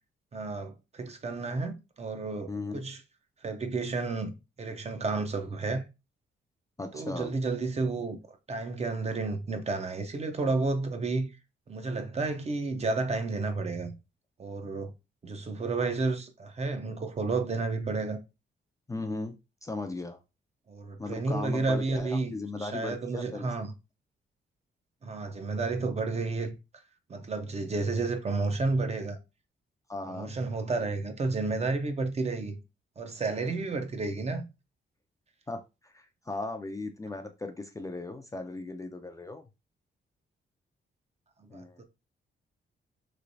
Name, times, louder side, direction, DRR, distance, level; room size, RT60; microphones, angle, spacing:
voice 1, 0.3-3.0 3.4-4.3 4.6-5.8 6.9-8.2 8.5-11.3 11.7-13.9 14.4-14.9 15.2-18.2 20.7-22.3 22.6-23.7 25.0-26.5 27.1-29.2 30.1-32.6 33.0-34.4 41.4-41.8, right 3 dB, 35° right, 0.6 m, -31 dB
voice 2, 2.5-2.9 6.8-7.3 18.9-19.4 19.6-20.2 21.0-23.7 29.9-30.3 35.5-39.4 41.5-41.8, left 2 dB, 15° left, 0.4 m, -37 dB
3.1 x 3.0 x 2.6 m
cardioid pair, 105°, 20 cm